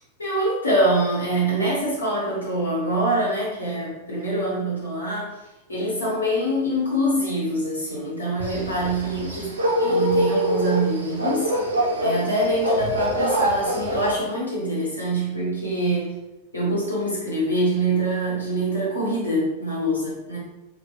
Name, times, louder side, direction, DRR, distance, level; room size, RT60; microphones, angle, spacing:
voice 1, 0.2-5.4 5.7-9.5 9.8-11.5 12.0-16.1 16.5-20.4, right 1 dB, 75° left, -5 dB, 1.0 m, -24 dB
sound 1, 8.4-14.1, equal, 75° right, 0.4 m, -24 dB
2.7 x 2.2 x 2.4 m, 0.96 s
figure-of-eight pair, 90°, 0 cm